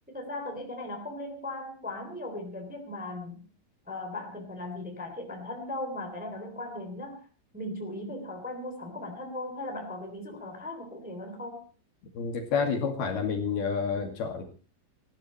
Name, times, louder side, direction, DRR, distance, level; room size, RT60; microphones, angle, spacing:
voice 1, 0.1-3.5 3.8-7.3 7.5-11.6, left 1 dB, ahead, 4 dB, 2.2 m, -38 dB
voice 2, 12.2-14.4, left 5 dB, 55° left, 4 dB, 3.9 m, -29 dB
19.0 x 15.0 x 4.3 m, 0.35 s
omnidirectional pair, 5.6 m